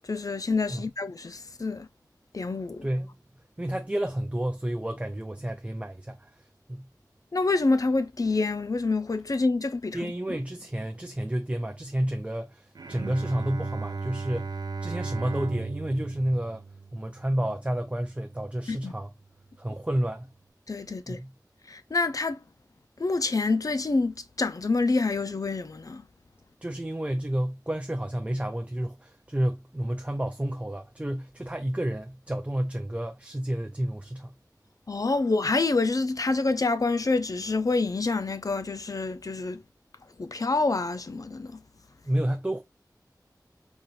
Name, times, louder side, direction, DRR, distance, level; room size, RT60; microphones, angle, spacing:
voice 1, 0.1-1.9 2.3-2.9 7.3-10.0 18.7-18.9 20.7-21.2 21.7-22.4 23.0-26.0 34.9-39.6 40.2-41.6, left 3 dB, 55° left, 0.5 m, -27 dB
voice 2, 2.8-3.2 3.6-6.3 6.7-6.9 9.9-16.6 16.9-19.1 19.6-20.3 21.1-21.3 26.6-34.3 42.1-42.6, right 1 dB, 15° right, 0.5 m, -30 dB
Bowed string instrument, 12.7-18.0, right 4 dB, 70° right, 0.4 m, -36 dB
4.1 x 2.6 x 3.1 m
wide cardioid pair, 50°, 7 cm